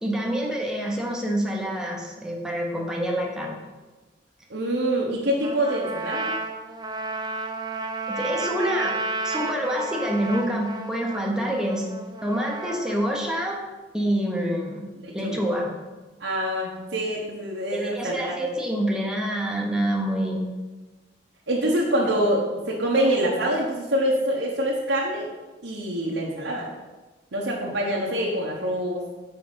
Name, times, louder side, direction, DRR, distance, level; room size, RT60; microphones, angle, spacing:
voice 1, 0.0-3.6 8.1-9.0 9.2-11.9 12.2-13.6 13.9-14.9 15.1-15.8 17.7-20.4, equal, 5° right, -1 dB, 1.0 m, -27 dB
voice 2, 4.5-6.3 15.0-15.4 16.2-18.3 21.5-25.3 25.6-26.7 27.3-29.0, right 1 dB, 80° right, -3 dB, 1.0 m, -25 dB
Trumpet, 5.4-13.5, right 3 dB, 25° right, 0.5 m, -32 dB
5.8 x 5.0 x 5.1 m, 1.2 s
head